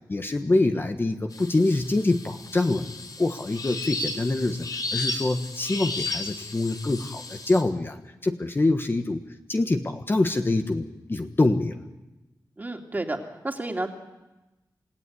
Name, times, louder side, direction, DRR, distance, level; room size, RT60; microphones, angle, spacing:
voice 1, 0.1-2.9 3.2-9.2 9.5-11.8, left 2 dB, 30° left, 5 dB, 1.3 m, -25 dB
sound 1, 1.3-7.6, left 3 dB, 55° left, 3.5 m, -34 dB
voice 2, 12.6-13.9, right 2 dB, 25° right, 2 dB, 2.7 m, -31 dB
28.0 x 17.0 x 9.5 m, 1.1 s
wide cardioid pair, 125°, 8 cm